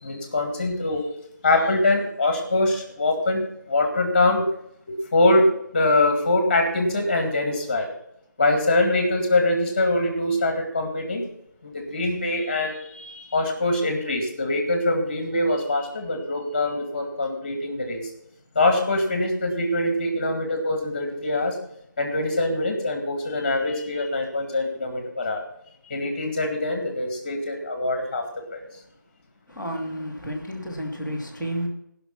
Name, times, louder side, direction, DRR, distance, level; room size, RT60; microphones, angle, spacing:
voice 1, 0.0-1.1 1.4-4.5 4.9-7.9 8.4-11.3 11.6-18.0 18.6-21.6 22.0-25.4 25.9-28.7, left 2 dB, 25° left, 4 dB, 2.0 m, -23 dB
voice 2, 29.5-31.7, equal, 5° right, -10 dB, 1.2 m, -31 dB
16.5 x 6.0 x 5.8 m, 0.76 s
figure-of-eight pair, 170°, 10 cm